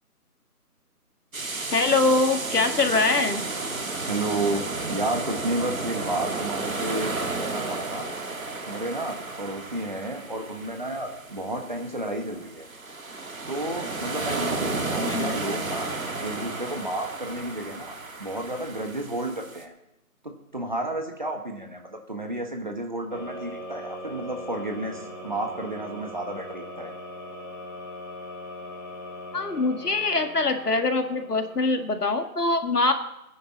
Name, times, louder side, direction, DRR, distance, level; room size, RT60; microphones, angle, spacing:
sound 1, 1.3-19.6, right 3 dB, 60° right, 1.9 m, -33 dB
voice 1, 1.7-3.4 15.1-15.4 29.3-32.9, left 3 dB, 75° left, 6 dB, 2.0 m, -23 dB
voice 2, 4.1-8.1 8.7-12.7 13.5-15.9 16.2-19.7 20.2-26.9, right 1 dB, 30° right, 4 dB, 1.3 m, -32 dB
sound 2, 23.1-32.0, left 1 dB, 30° left, 3.8 m, -40 dB
22.5 x 9.8 x 4.1 m, 0.86 s
figure-of-eight pair, 175°, 46 cm